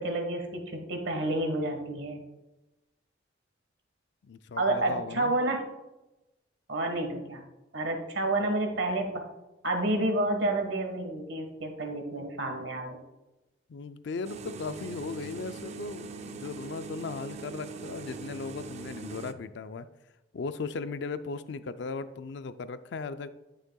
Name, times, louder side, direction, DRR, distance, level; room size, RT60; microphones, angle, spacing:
voice 1, 0.0-2.2 4.6-5.6 6.7-7.4 7.7-9.1 9.6-13.0, right 2 dB, 65° right, 4 dB, 1.4 m, -29 dB
voice 2, 4.2-5.3 13.7-19.9 20.3-23.3, left 4 dB, 65° left, 12 dB, 0.4 m, -37 dB
sound 1, 14.2-19.3, right 5 dB, 35° right, 0.4 m, -42 dB
11.0 x 6.4 x 2.3 m, 1.0 s
head